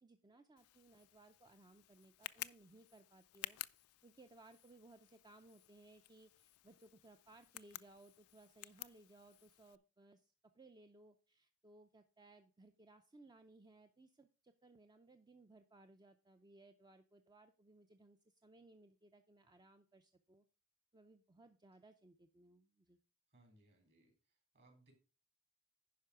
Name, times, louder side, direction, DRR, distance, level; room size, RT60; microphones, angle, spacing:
voice 1, 0.0-3.6 4.0-20.5 20.9-23.0, right 2 dB, 20° right, 7 dB, 0.5 m, -63 dB
Tick, 0.6-9.8, left 16 dB, 85° left, 0.4 m, -54 dB
voice 2, 23.3-24.9, right 2 dB, 50° right, 4 dB, 3.6 m, -69 dB
10.5 x 5.3 x 4.9 m, 0.33 s
head